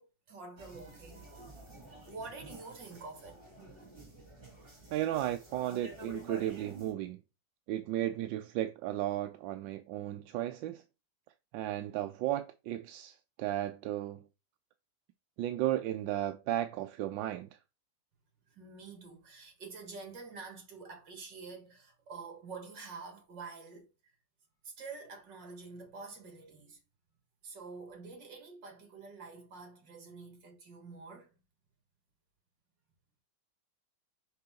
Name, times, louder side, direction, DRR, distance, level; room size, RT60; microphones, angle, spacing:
voice 1, 0.0-1.6 2.1-3.4 18.5-23.9 24.6-26.8 27.4-31.3, right 4 dB, 70° right, 2.8 m, -47 dB
sound 1, 0.6-6.9, right 1 dB, 30° right, 2.8 m, -50 dB
voice 2, 4.9-7.2 7.7-10.8 11.5-14.3 15.4-17.5, right 13 dB, 85° right, 1.3 m, -34 dB
5.7 x 5.7 x 3.8 m
omnidirectional pair, 2.0 m